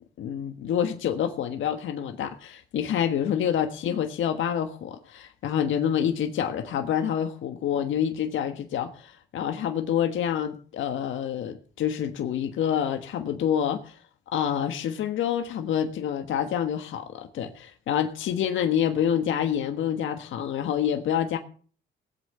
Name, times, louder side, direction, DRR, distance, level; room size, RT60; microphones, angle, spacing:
voice 1, 0.2-14.0 14.3-21.4, left 9 dB, 75° left, 1.4 m, -27 dB
18.5 x 8.4 x 6.8 m
cardioid pair, 90°, 20 cm